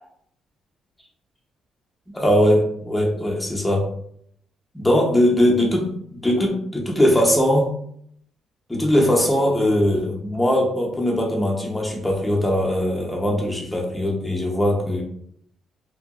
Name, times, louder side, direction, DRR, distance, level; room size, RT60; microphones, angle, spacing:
voice 1, 2.1-3.9 4.7-7.7 8.7-15.0, equal, 10° left, -2 dB, 0.8 m, -20 dB
2.8 x 2.5 x 2.3 m, 0.67 s
cardioid pair, 90°, 0 cm